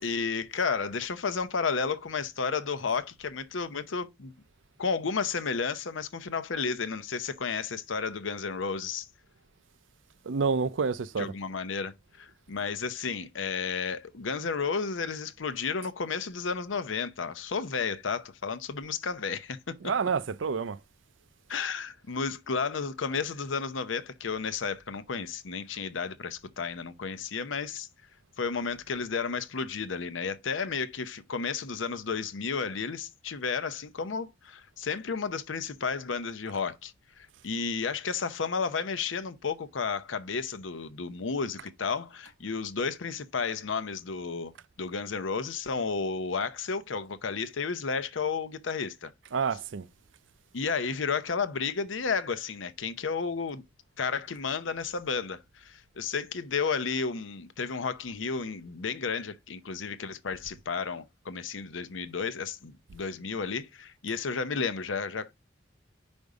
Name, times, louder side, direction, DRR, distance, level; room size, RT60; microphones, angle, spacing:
voice 1, 0.0-4.3 4.8-9.1 11.2-19.8 21.5-27.9 28.4-44.5 44.8-49.1 50.5-53.6 54.0-65.3, left 5 dB, 85° left, 0.7 m, -32 dB
voice 2, 10.3-11.3 19.8-20.8 49.3-49.8, right 5 dB, 80° right, 0.5 m, -28 dB
5.3 x 5.2 x 4.7 m
head